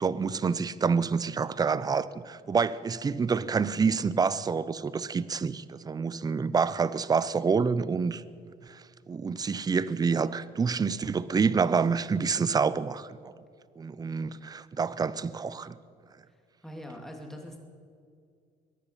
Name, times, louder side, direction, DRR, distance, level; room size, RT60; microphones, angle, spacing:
voice 1, 0.0-8.2 8.7-13.3 13.8-15.8, right 5 dB, 20° right, 0.5 m, -27 dB
voice 2, 16.3-17.6, equal, ahead, 2.5 m, -43 dB
23.0 x 10.5 x 5.7 m
cardioid pair, 110°, 17 cm